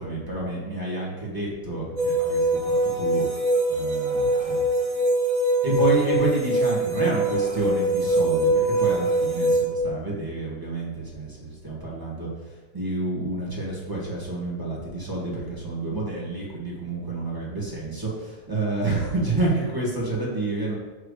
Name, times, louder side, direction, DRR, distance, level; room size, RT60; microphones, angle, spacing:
voice 1, 0.0-3.2 3.7-4.6 5.6-12.3 12.7-20.7, right 2 dB, 15° right, -6 dB, 0.9 m, -29 dB
sound 1, 2.0-9.6, right 1 dB, 45° right, 2.0 m, -23 dB
6.6 x 4.6 x 6.6 m, 1.3 s
omnidirectional pair, 3.6 m